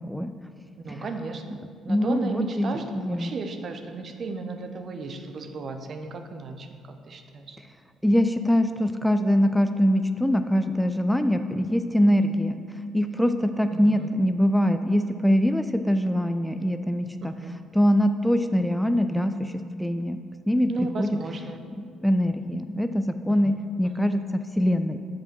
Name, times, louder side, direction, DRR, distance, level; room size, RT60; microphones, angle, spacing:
voice 1, 0.8-1.4 1.8-7.6 13.7-14.1 17.4-17.5 20.7-21.6 23.3-24.1, right 4 dB, 50° right, 6 dB, 0.8 m, -35 dB
voice 2, 1.9-2.7 3.0-3.3 8.0-12.6 12.9-17.3 17.7-20.2 20.5-21.2 21.8-24.2 24.6-25.0, equal, 5° left, 9 dB, 0.4 m, -23 dB
7.0 x 5.3 x 6.1 m, 2.3 s
hypercardioid pair, 50°, 0 cm